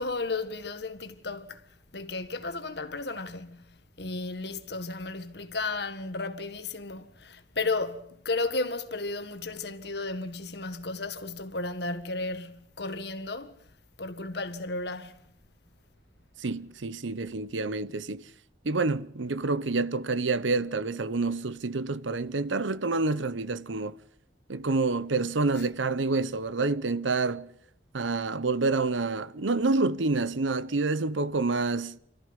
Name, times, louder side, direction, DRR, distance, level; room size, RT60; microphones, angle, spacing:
voice 1, 0.0-1.6 1.9-13.6 14.0-15.2 25.6-25.7, left 3 dB, 60° left, 1.7 m, -34 dB
voice 2, 16.4-18.2 18.6-23.9 24.5-27.5 27.9-32.0, right 3 dB, 90° right, 0.9 m, -28 dB
27.0 x 14.0 x 9.7 m
head